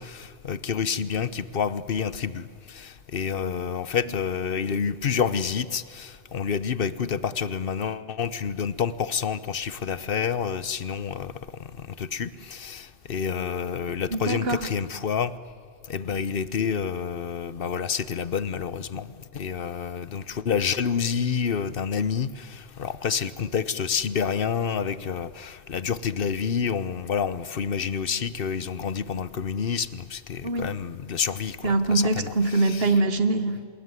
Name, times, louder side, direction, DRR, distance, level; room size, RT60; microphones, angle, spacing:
voice 1, 0.0-11.3 12.0-15.3 15.9-19.1 19.3-31.7 32.2-32.3, left 6 dB, 55° left, 16 dB, 1.1 m, -28 dB
voice 2, 14.1-14.7 30.4-30.8 31.6-33.6, right 3 dB, 60° right, 11 dB, 1.7 m, -24 dB
26.5 x 20.5 x 9.8 m, 2.2 s
omnidirectional pair, 1.1 m